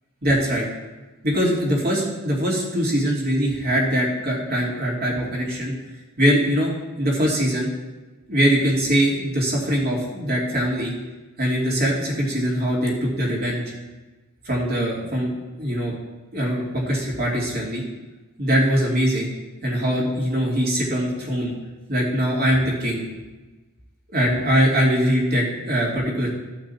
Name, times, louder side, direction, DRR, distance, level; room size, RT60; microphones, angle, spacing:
voice 1, 0.2-0.7 1.2-5.7 6.2-6.7 7.0-7.7 8.3-10.9 11.4-13.6 14.4-15.9 16.3-17.8 18.4-19.3 19.6-21.5 21.9-23.0 24.1-26.3, equal, 45° right, -3 dB, 2.7 m, -22 dB
14.5 x 5.9 x 4.3 m, 1.2 s
head